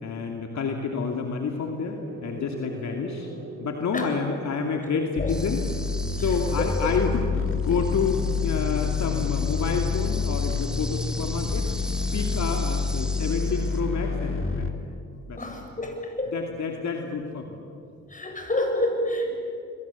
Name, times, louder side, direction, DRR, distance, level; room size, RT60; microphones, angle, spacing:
voice 1, 0.0-3.3 3.6-5.6 6.1-11.7 12.1-14.7 15.3-15.4 16.3-17.6, left 5 dB, 60° left, 3 dB, 2.6 m, -29 dB
sound 1, 1.5-5.3, right 2 dB, 40° right, 5.8 m, -42 dB
voice 2, 4.9-5.3 6.2-6.3 6.6-7.0 15.4-16.3 18.1-19.3, left 1 dB, 25° left, 4 dB, 7.7 m, -29 dB
sound 2, 5.2-14.7, left 5 dB, 40° left, 2.7 m, -27 dB
sound 3, 5.3-7.2 7.5-13.8, equal, ahead, 3.7 m, -41 dB
27.5 x 23.0 x 8.4 m, 2.5 s
supercardioid pair, 60°, 31 cm